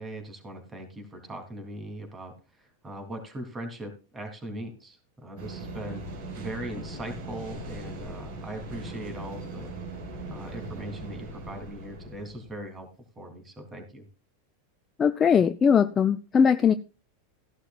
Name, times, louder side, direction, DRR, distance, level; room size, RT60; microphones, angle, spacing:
voice 1, 0.0-6.0 6.4-9.7 10.3-12.9 13.2-14.0, right 1 dB, 20° right, 3.3 m, -40 dB
sound 1, 5.4-12.7, right 2 dB, 60° right, 4.8 m, -40 dB
voice 2, 15.0-16.7, left 7 dB, 25° left, 0.6 m, -20 dB
15.0 x 11.5 x 2.5 m
hypercardioid pair, 95°, 0 cm